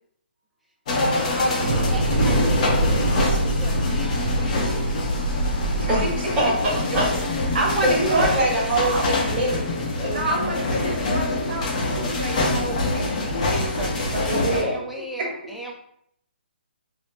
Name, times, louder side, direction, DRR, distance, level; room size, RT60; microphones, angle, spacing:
sound 1, 0.9-14.6, left 2 dB, 40° left, 0.6 m, -25 dB
voice 1, 1.1-5.1 14.5-15.7, right 1 dB, ahead, -3 dB, 0.3 m, -38 dB
Thunder / Explosion, 1.6-9.8, right 1 dB, 80° right, 0.4 m, -26 dB
voice 2, 5.5-7.1 7.8-9.7 10.0-10.6 11.8-12.0 14.3-14.8, right 1 dB, 20° right, -7 dB, 1.1 m, -25 dB
voice 3, 7.5-8.3 8.8-9.1 10.1-14.4 15.2-15.3, right 2 dB, 55° right, -1 dB, 0.8 m, -28 dB
3.1 x 2.0 x 2.8 m, 0.69 s
hypercardioid pair, 155°, 6 cm